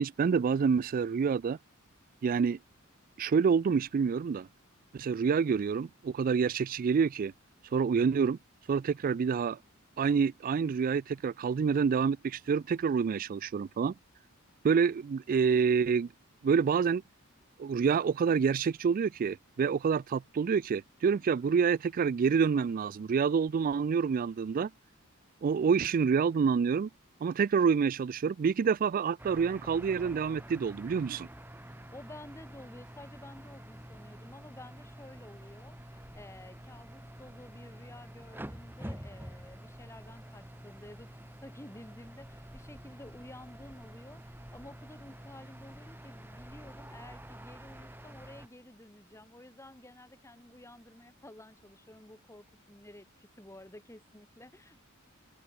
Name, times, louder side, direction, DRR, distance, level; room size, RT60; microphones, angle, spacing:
voice 1, 0.0-1.6 2.2-2.6 3.2-4.5 4.9-7.3 7.6-8.4 8.7-9.6 10.0-13.9 14.6-16.1 16.4-17.0 17.6-24.7 25.4-26.9 27.2-31.3, right 6 dB, 40° right, 0.3 m, -27 dB
sound 1, 29.2-48.5, equal, 10° right, 4.3 m, -48 dB
voice 2, 31.9-54.8, left 1 dB, 15° left, 3.1 m, -52 dB
head